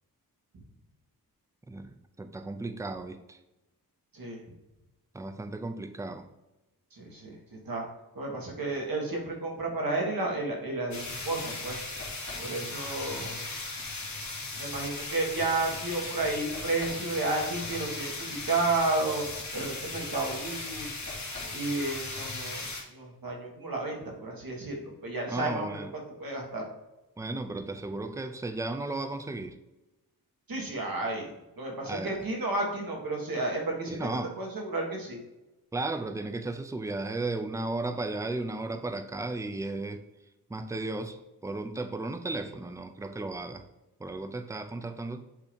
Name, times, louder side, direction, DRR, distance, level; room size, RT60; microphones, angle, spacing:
voice 1, 1.7-3.4 5.1-6.3 25.3-25.9 27.2-29.6 31.9-32.2 33.9-34.3 35.7-40.0 40.5-43.6 44.0-45.2, right 2 dB, 10° right, 8 dB, 0.4 m, -35 dB
voice 2, 6.9-7.8 8.1-11.8 12.4-13.4 14.6-19.3 19.5-20.9 21.5-25.9 26.2-26.7 30.5-34.1 34.4-35.2, right 2 dB, 65° right, 0 dB, 1.6 m, -32 dB
sound 1, 10.9-22.8, left 3 dB, 45° left, 1.8 m, -37 dB
8.3 x 2.8 x 5.1 m, 1.0 s
wide cardioid pair, 150°, 38 cm